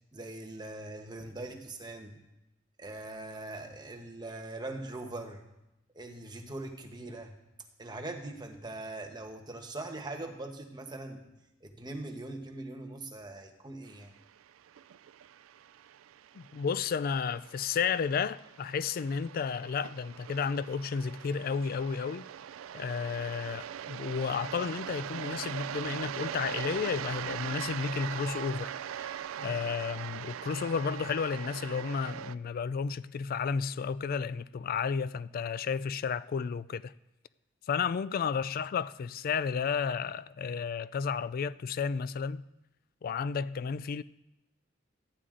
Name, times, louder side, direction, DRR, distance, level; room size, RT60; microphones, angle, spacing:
voice 1, 0.1-2.2 2.8-5.4 5.9-7.4 7.8-11.2 11.6-14.1, right 2 dB, 20° right, 1.1 m, -41 dB
sound 1, 14.0-32.3, right 9 dB, 85° right, 0.3 m, -41 dB
voice 2, 16.3-22.2 22.7-29.1 29.4-36.9 37.7-42.4 43.0-44.0, left 6 dB, 45° left, 0.3 m, -32 dB
14.0 x 9.7 x 3.8 m
head